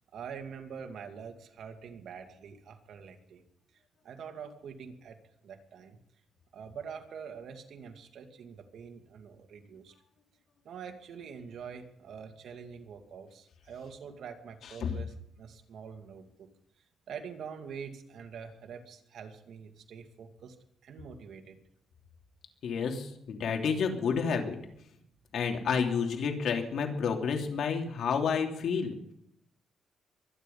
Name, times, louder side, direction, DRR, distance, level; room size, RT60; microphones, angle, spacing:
voice 1, 0.1-3.4 4.0-6.0 6.5-9.9 10.6-16.5 17.1-20.6 20.8-21.6, right 6 dB, 70° right, 5 dB, 2.3 m, -45 dB
voice 2, 22.6-24.6 25.3-28.9, left 6 dB, 70° left, 3 dB, 3.1 m, -30 dB
23.5 x 10.0 x 5.5 m, 0.73 s
cardioid pair, 115°, 0 cm